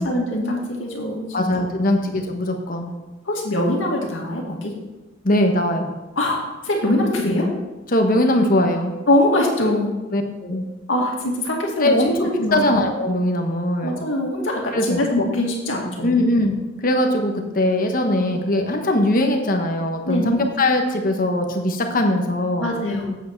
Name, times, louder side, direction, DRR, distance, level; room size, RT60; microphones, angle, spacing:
voice 1, 0.0-1.6 1.9-2.1 3.3-4.7 6.2-7.5 9.1-9.9 10.9-11.9 12.2-12.6 13.8-16.1 20.1-20.3 22.6-23.1, left 1 dB, 85° left, -1 dB, 2.2 m, -22 dB
voice 2, 1.3-2.9 5.2-5.9 7.9-9.0 10.1-10.6 11.8-14.0 14.7-15.0 16.0-16.5 16.8-22.7, left 1 dB, 45° left, 4 dB, 1.2 m, -20 dB
8.3 x 8.3 x 4.6 m, 1.1 s
head